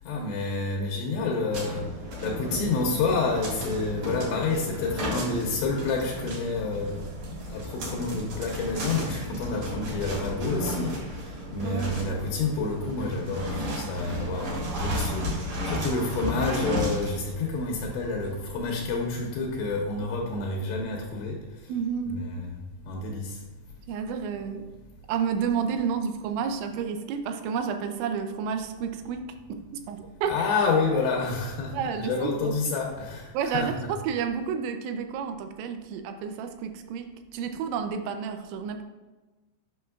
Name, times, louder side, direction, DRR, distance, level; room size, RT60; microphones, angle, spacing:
voice 1, 0.1-1.9 2.2-7.1 7.5-15.3 15.7-21.4 22.1-22.5 22.9-23.4 30.3-33.9, left 3 dB, 80° left, 0 dB, 2.7 m, -29 dB
sound 1, 1.5-20.3, equal, 55° right, 2.1 m, -34 dB
voice 2, 11.6-12.0 21.7-22.2 23.9-24.6 25.1-29.2 29.5-30.3 31.7-32.6 33.3-37.1 37.3-38.8, right 6 dB, 80° right, 7 dB, 2.8 m, -30 dB
8.5 x 5.9 x 2.3 m, 1.2 s
omnidirectional pair, 5.5 m